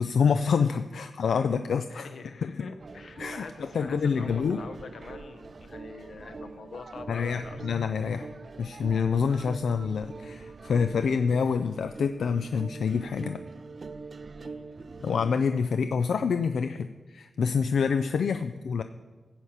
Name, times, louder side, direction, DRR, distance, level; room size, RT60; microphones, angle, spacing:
voice 1, 0.0-2.1 2.4-2.5 3.2-4.6 7.1-8.3 8.6-13.4 15.0-16.9 17.1-18.8, left 6 dB, 85° left, 9 dB, 0.4 m, -27 dB
voice 2, 1.9-7.7 14.4-14.7 18.2-18.4, left 4 dB, 65° left, 9 dB, 0.9 m, -44 dB
sound 1, 2.8-15.3, right 4 dB, 40° right, 0.4 m, -44 dB
14.5 x 5.6 x 8.0 m, 1.3 s
wide cardioid pair, 150°, 0 cm